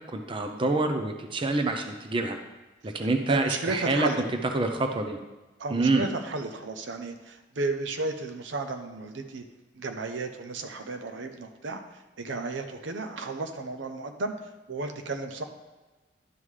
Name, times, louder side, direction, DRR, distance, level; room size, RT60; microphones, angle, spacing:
voice 1, 0.1-2.4 2.8-4.1 4.5-5.2 5.7-6.1, right 2 dB, 30° right, 5 dB, 0.6 m, -26 dB
voice 2, 3.3-4.2 5.6-9.4 9.7-14.3 14.7-15.4, right 3 dB, 80° right, 6 dB, 0.7 m, -33 dB
11.0 x 5.4 x 3.3 m, 1.2 s
head